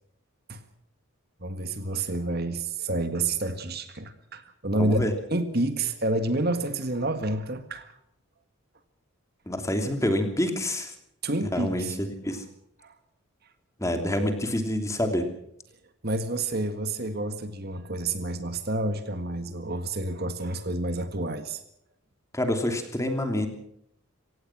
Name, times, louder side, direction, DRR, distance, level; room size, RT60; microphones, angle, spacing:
voice 1, 1.4-7.9 11.2-12.0 12.8-13.0 16.0-21.6, right 2 dB, 45° right, 9 dB, 1.8 m, -29 dB
voice 2, 4.8-5.1 9.5-10.9 11.5-12.4 13.8-15.3 22.3-23.5, left 1 dB, 15° left, 6 dB, 3.0 m, -27 dB
25.0 x 18.0 x 6.2 m, 0.72 s
head